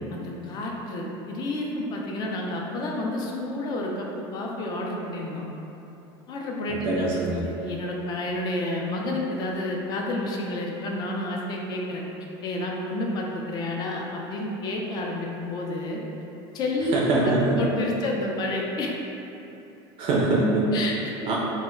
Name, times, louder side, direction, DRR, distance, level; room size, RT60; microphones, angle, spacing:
voice 1, 0.1-5.4 6.3-12.0 12.4-16.0 16.5-18.9 20.7-21.4, left 1 dB, 35° left, -1 dB, 0.3 m, -30 dB
voice 2, 6.7-7.4 16.9-17.6 20.0-20.7 21.3-21.4, right 2 dB, 50° right, -4 dB, 0.4 m, -23 dB
2.1 x 2.0 x 3.5 m, 3.0 s
cardioid pair, 145°, 12 cm